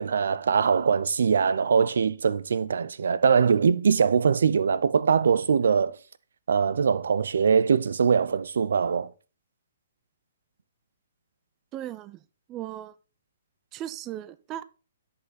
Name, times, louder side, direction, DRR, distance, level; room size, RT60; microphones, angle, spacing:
voice 1, 0.0-6.0 6.5-9.1, right 6 dB, 80° right, 0.6 m, -22 dB
voice 2, 11.7-12.2 12.5-13.0 13.7-14.6, right 12 dB, 25° right, 0.4 m, -37 dB
10.5 x 5.6 x 4.1 m
hypercardioid pair, 145°, 0 cm